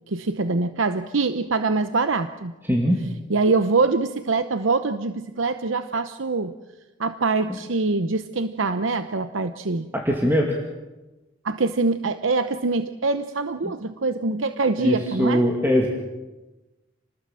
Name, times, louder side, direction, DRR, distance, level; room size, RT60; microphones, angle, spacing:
voice 1, 0.1-2.5 3.3-6.5 7.0-9.9 11.4-15.5, right 3 dB, 85° right, 10 dB, 0.9 m, -24 dB
voice 2, 2.7-3.0 9.9-10.6 14.8-15.9, equal, 10° right, 0 dB, 2.4 m, -21 dB
28.0 x 20.0 x 7.5 m, 1.1 s
head